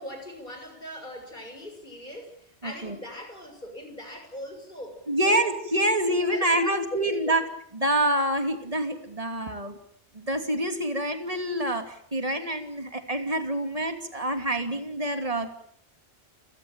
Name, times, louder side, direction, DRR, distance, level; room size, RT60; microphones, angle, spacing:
voice 1, 0.0-5.4 6.1-7.2, equal, 45° left, 5 dB, 6.9 m, -40 dB
voice 2, 2.6-3.0 5.1-7.4 7.7-9.8 10.1-15.5, right 1 dB, 30° right, 7 dB, 2.9 m, -26 dB
29.5 x 16.5 x 9.1 m, 0.65 s
omnidirectional pair, 1.1 m